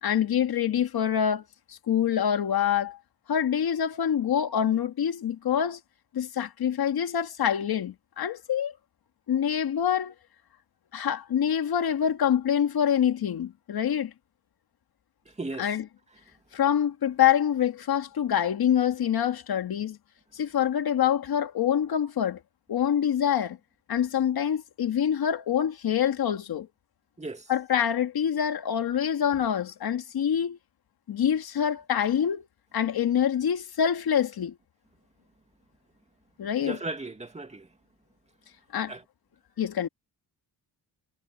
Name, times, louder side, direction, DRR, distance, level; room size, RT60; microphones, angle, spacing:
voice 1, 0.0-1.4 1.7-3.0 3.3-5.8 6.1-8.7 9.3-10.1 10.9-14.1 15.6-15.8 16.5-20.0 20.3-22.4 22.7-23.6 23.9-26.7 27.5-30.6 31.1-32.5 32.7-34.5 36.4-36.8 38.7-38.9 39.6-39.9, left 9 dB, 70° left, 1.9 m, -25 dB
voice 2, 15.3-15.7 27.2-27.5 36.6-37.7 38.9-39.0, right 2 dB, 15° right, 2.3 m, -36 dB
wide cardioid pair, 165°, 39 cm